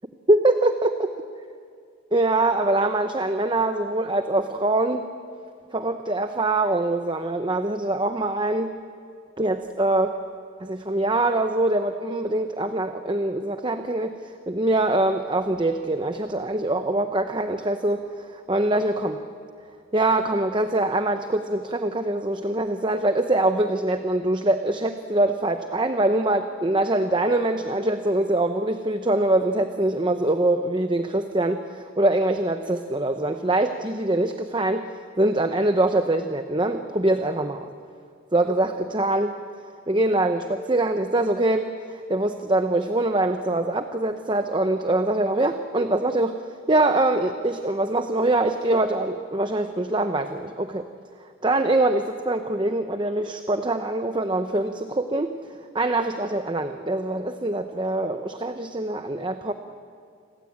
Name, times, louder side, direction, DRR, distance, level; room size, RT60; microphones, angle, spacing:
voice 1, 0.3-1.1 2.1-5.1 5.7-8.7 9.4-10.1 10.6-14.2 14.5-18.1 18.5-19.2 19.9-34.9 35.2-37.7 38.3-39.4 39.9-46.4 46.7-50.9 51.4-55.3 55.7-59.5, right 2 dB, 20° right, 7 dB, 0.9 m, -23 dB
29.5 x 22.5 x 8.7 m, 2.3 s
head